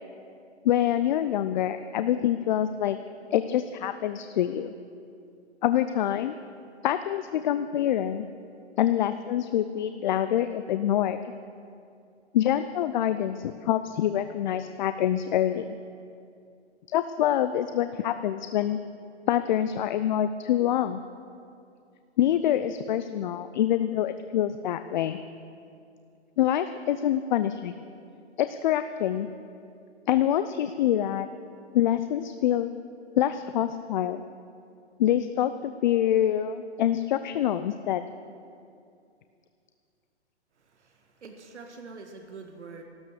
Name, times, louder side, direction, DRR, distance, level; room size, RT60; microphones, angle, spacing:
voice 1, 0.6-3.0 3.3-4.7 5.6-6.4 6.8-8.3 8.8-11.2 12.3-15.8 16.9-18.8 19.3-21.0 22.2-25.2 26.4-27.7 28.4-29.3 30.1-31.3 31.7-32.7 33.2-34.2 35.0-38.1, left 11 dB, 45° left, 11 dB, 0.5 m, -26 dB
voice 2, 40.7-42.8, right 4 dB, 80° right, 3 dB, 1.8 m, -45 dB
14.5 x 13.0 x 6.6 m, 2.5 s
hypercardioid pair, 135°, 34 cm